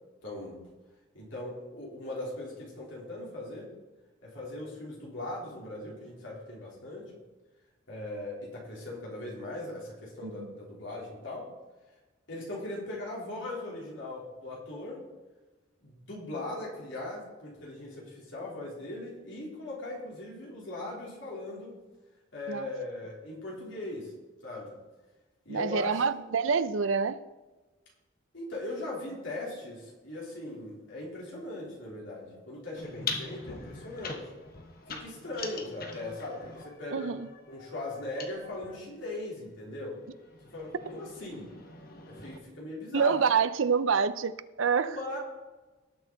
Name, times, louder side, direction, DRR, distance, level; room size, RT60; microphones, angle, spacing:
voice 1, 0.2-0.6 1.1-3.7 4.2-7.1 7.9-11.5 12.3-15.0 15.8-21.8 22.3-24.1 24.4-24.7 25.5-26.3 28.3-34.3 34.9-37.1 37.5-40.0 40.5-41.5 42.1-43.2 44.8-45.2, left 2 dB, 65° left, 3.7 m, -39 dB
voice 2, 25.5-27.2 36.9-37.3 42.9-44.3 44.6-45.2, right 5 dB, 75° right, 0.5 m, -27 dB
sound 1, 32.7-38.8 39.7-42.4, left 4 dB, 45° left, 1.3 m, -42 dB
18.0 x 6.3 x 4.0 m
head